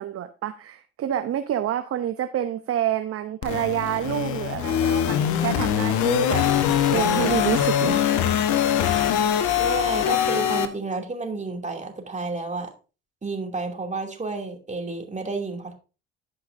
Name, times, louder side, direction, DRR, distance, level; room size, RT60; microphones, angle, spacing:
voice 1, 0.0-6.4 6.9-8.0, right 11 dB, 45° right, 9 dB, 0.8 m, -28 dB
sound 1, 3.4-10.7, left 9 dB, 65° left, 1.1 m, -22 dB
voice 2, 9.5-12.7 13.2-15.7, right 3 dB, 20° right, 3 dB, 2.6 m, -30 dB
14.0 x 5.6 x 2.6 m, 0.33 s
hypercardioid pair, 60°, 32 cm